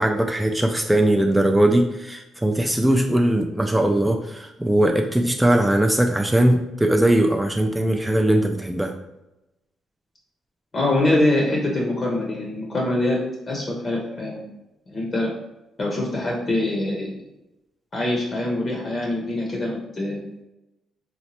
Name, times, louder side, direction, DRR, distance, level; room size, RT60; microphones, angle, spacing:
voice 1, 0.0-8.9, right 1 dB, 5° right, 3 dB, 0.3 m, -20 dB
voice 2, 10.7-14.5 14.9-15.3 15.8-17.1 17.9-20.2, left 1 dB, 35° left, -1 dB, 0.7 m, -24 dB
2.9 x 2.1 x 2.9 m, 0.94 s
cardioid pair, 90°, 0 cm